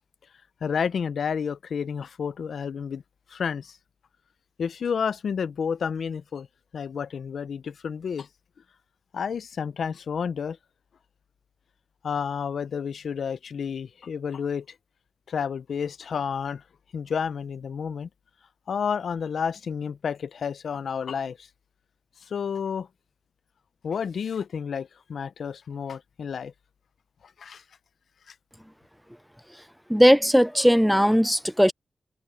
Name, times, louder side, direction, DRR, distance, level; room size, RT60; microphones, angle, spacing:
voice 1, 0.6-3.0 3.3-3.8 4.6-6.5 6.7-8.3 9.1-10.6 12.0-14.7 15.3-16.6 16.9-18.1 18.7-21.5 22.3-22.9 23.8-26.5 27.4-27.6 28.3-28.4, left 6 dB, 80° left, 0.5 m, -30 dB
voice 2, 29.9-31.7, equal, ahead, 0.3 m, -18 dB
wide cardioid pair, 150°, 0 cm